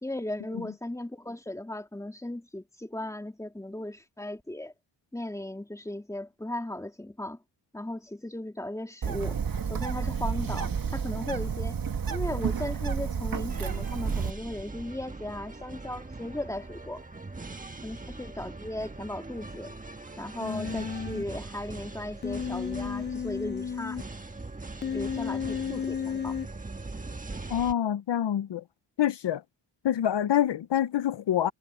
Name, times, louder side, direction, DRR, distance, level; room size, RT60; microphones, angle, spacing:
voice 1, 0.0-4.7 5.1-7.4 7.7-9.4 9.7-11.8 12.1-17.0 17.8-19.7 20.2-24.0 24.9-26.4, left 1 dB, 5° left, 2.5 m, -37 dB
Bird, 9.0-14.3, right 6 dB, 50° right, 1.7 m, -30 dB
sound 1, 13.5-27.7, right 3 dB, 20° right, 1.4 m, -41 dB
Human voice, 20.4-21.2 22.2-24.0 24.8-26.5, left 7 dB, 25° left, 0.4 m, -33 dB
voice 2, 27.5-28.6 29.0-29.4 29.8-31.5, left 10 dB, 70° left, 0.7 m, -26 dB
wide cardioid pair, 155°, 44 cm